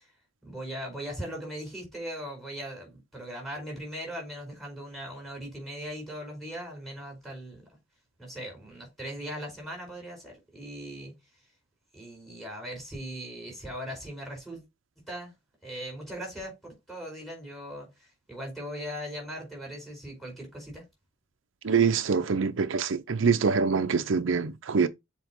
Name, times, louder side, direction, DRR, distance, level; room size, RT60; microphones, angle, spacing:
voice 1, 0.4-7.6 8.2-11.1 11.9-14.6 15.1-15.3 15.6-17.9 18.3-20.8, equal, ahead, 4.8 m, -39 dB
voice 2, 21.6-24.9, right 5 dB, 75° right, 0.6 m, -25 dB
7.1 x 4.5 x 3.0 m
head